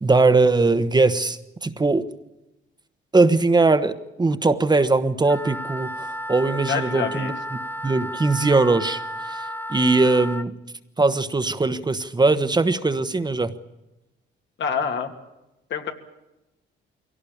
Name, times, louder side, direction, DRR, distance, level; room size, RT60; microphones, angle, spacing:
voice 1, 0.0-2.1 3.1-7.3 7.8-9.4 9.7-10.5 11.0-13.5, right 3 dB, 20° right, 10 dB, 1.2 m, -20 dB
Wind instrument woodwind instrument, 5.2-10.5, equal, 10° left, 0.7 m, -33 dB
voice 2, 6.7-7.3 14.6-15.1 15.7-15.9, left 6 dB, 65° left, 4 dB, 2.6 m, -26 dB
23.0 x 17.5 x 8.7 m, 0.96 s
cardioid pair, 90°, 20 cm